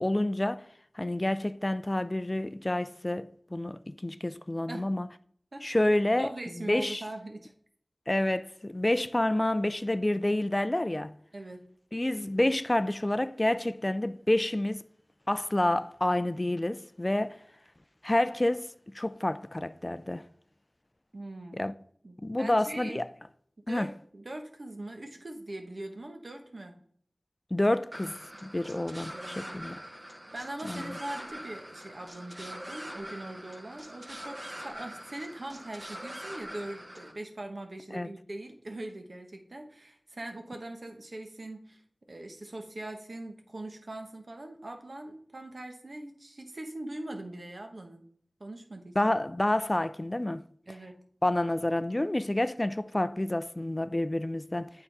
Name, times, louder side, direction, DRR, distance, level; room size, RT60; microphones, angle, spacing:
voice 1, 0.0-0.7 0.9-5.1 5.6-7.0 8.1-11.2 11.9-14.8 15.3-17.4 18.0-20.3 21.5-21.7 22.2-23.1 23.7-23.9 27.5-28.2 28.4-29.8 30.6-31.0 37.9-38.1 49.0-50.4 51.2-54.7, left 1 dB, 30° left, 0.3 m, -28 dB
voice 2, 6.2-7.5 11.3-11.6 21.1-21.6 22.0-23.0 23.7-26.8 29.1-29.6 30.0-30.1 30.3-41.8 42.1-48.0 48.4-49.0 50.7-51.0, right 1 dB, 65° right, 1.1 m, -41 dB
sound 1, 27.9-37.1, equal, 30° right, 1.6 m, -43 dB
8.6 x 3.8 x 4.6 m
wide cardioid pair, 45°, 0 cm